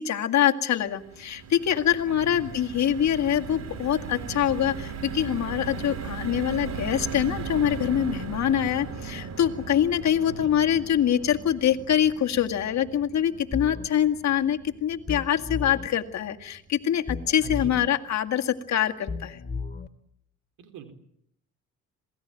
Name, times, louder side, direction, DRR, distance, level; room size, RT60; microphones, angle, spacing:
voice 1, 0.0-19.4, left 10 dB, 65° left, 6 dB, 2.1 m, -24 dB
sound 1, 0.8-17.1 17.5-17.6 17.9-18.1, right 5 dB, 60° right, 3.9 m, -38 dB
voice 2, 2.1-2.5 10.2-10.6 17.4-17.8 20.6-20.9, right 5 dB, 85° right, 8 dB, 4.3 m, -42 dB
sound 2, 13.5-13.9 15.1-15.9 17.1-17.9 19.1-19.9, left 4 dB, 35° left, 2.5 m, -34 dB
27.0 x 19.0 x 9.2 m, 0.73 s
cardioid pair, 90°, 30 cm